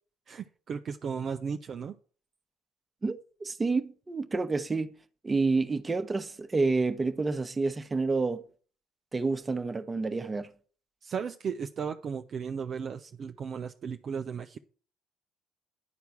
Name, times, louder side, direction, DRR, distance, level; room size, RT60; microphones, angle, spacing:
voice 1, 0.3-2.0 11.0-14.6, right 6 dB, 50° right, 0.6 m, -35 dB
voice 2, 3.0-4.9 5.2-8.4 9.1-10.5, right 3 dB, 25° right, 1.1 m, -29 dB
11.0 x 4.5 x 7.2 m
hypercardioid pair, 55°, 0 cm